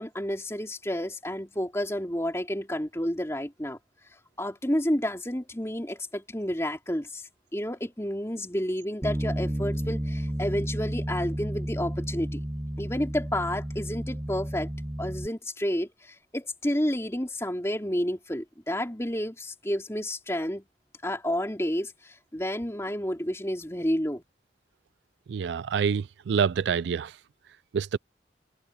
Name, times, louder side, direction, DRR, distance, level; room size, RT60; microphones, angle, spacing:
voice 1, 0.0-3.8 4.4-12.4 12.8-14.7 15.0-20.6 21.0-24.2, equal, 15° left, 3.1 m, -30 dB
Bass guitar, 9.0-15.3, right 1 dB, 15° right, 0.6 m, -32 dB
voice 2, 25.3-27.1 27.7-28.0, right 6 dB, 80° right, 0.3 m, -26 dB
head